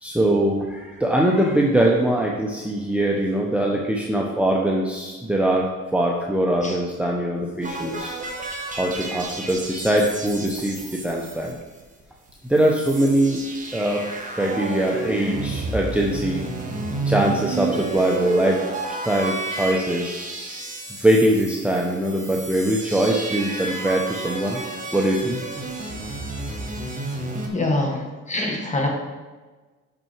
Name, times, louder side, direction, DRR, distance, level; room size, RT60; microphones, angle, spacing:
voice 1, 0.0-8.1 8.7-11.5 12.4-13.4 13.7-14.1 14.3-16.5 17.1-18.6 18.9-20.4 21.0-24.6 24.9-25.4, right 1 dB, 5° right, -1 dB, 0.9 m, -22 dB
sound 1, 7.6-12.0 12.3-12.4 12.5-27.5, right 2 dB, 25° right, 1.5 m, -31 dB
voice 2, 27.5-28.9, left 2 dB, 25° left, 0 dB, 1.8 m, -25 dB
6.1 x 6.1 x 4.6 m, 1.3 s
cardioid pair, 90°, 30 cm